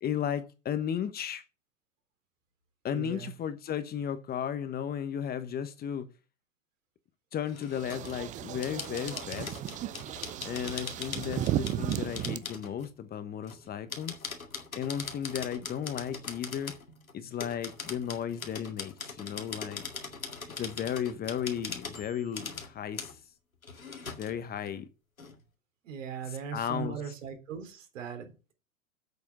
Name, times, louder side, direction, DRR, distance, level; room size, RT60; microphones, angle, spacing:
voice 1, 0.0-1.4 2.8-6.1 7.3-9.6 10.4-14.1 14.8-16.7 17.1-19.8 20.6-23.2 24.2-24.9 26.2-27.1, left 9 dB, 25° left, 1.0 m, -34 dB
voice 2, 2.9-3.3 25.8-28.5, right 7 dB, 65° right, 3.7 m, -39 dB
sound 1, 7.5-8.2 8.6-12.9 13.4-17.1 17.4-22.7 22.9-23.1 23.6-24.3 24.7-24.8 25.2-25.4, left 4 dB, 90° left, 2.2 m, -41 dB
sound 2, 7.7-12.4, right 12 dB, 20° right, 0.5 m, -35 dB
8.1 x 6.8 x 8.0 m
hypercardioid pair, 100°, 40 cm